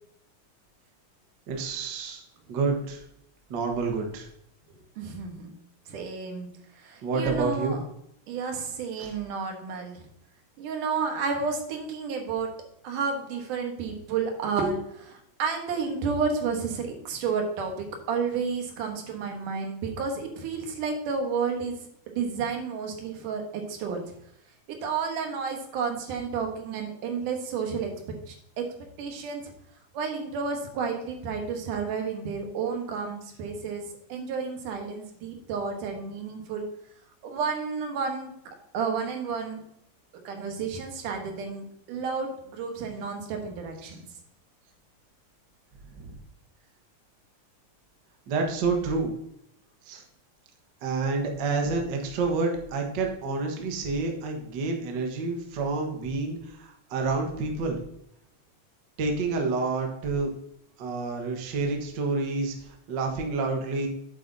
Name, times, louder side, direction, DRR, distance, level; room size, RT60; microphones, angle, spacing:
voice 1, 1.5-2.2 2.5-3.0 3.5-4.3 7.0-7.8 9.0-9.1 43.8-43.9 46.0-46.2 48.3-49.1 49.9-50.0 50.8-57.8 59.0-60.3 60.8-63.9, right 3 dB, 50° right, 2 dB, 1.4 m, -28 dB
voice 2, 5.0-5.5 5.9-6.5 6.8-7.8 8.3-10.0 10.6-12.5 12.8-21.7 22.1-24.0 24.8-27.9 28.3-28.6 29.0-29.4 29.9-33.8 34.1-36.7 37.2-38.3 38.7-39.6 40.2-44.0, right 5 dB, 80° right, 3 dB, 2.8 m, -31 dB
8.3 x 7.9 x 2.7 m, 0.75 s
omnidirectional pair, 3.6 m